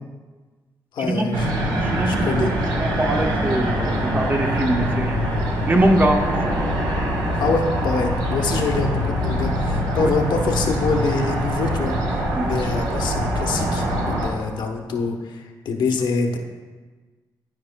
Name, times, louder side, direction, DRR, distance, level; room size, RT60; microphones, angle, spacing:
voice 1, 0.9-1.5 2.0-2.5 7.3-12.0 12.4-16.4, left 4 dB, 75° left, 2 dB, 0.9 m, -25 dB
sound 1, 1.3-14.3, equal, 85° right, 1.4 m, -23 dB
voice 2, 1.8-5.2 5.7-6.4 10.0-10.1 12.4-12.6, right 1 dB, 25° right, 3 dB, 0.9 m, -22 dB
13.0 x 4.9 x 2.2 m, 1.4 s
cardioid pair, 80°, 8 cm